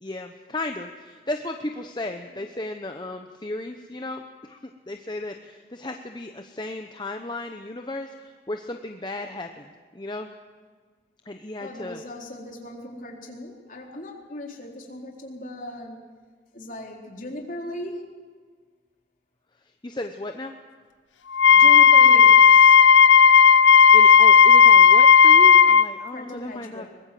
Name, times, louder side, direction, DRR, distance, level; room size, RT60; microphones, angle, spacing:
voice 1, 0.0-4.6 4.9-10.3 11.3-12.0 19.8-20.5 23.9-26.8, left 2 dB, 25° left, 5 dB, 0.9 m, -34 dB
voice 2, 11.6-16.0 16.5-18.1 21.5-22.4 26.1-26.9, left 1 dB, 45° left, 0 dB, 4.0 m, -37 dB
Wind instrument woodwind instrument, 21.3-25.9, left 7 dB, 90° left, 0.6 m, -12 dB
23.0 x 21.0 x 7.7 m, 1.5 s
head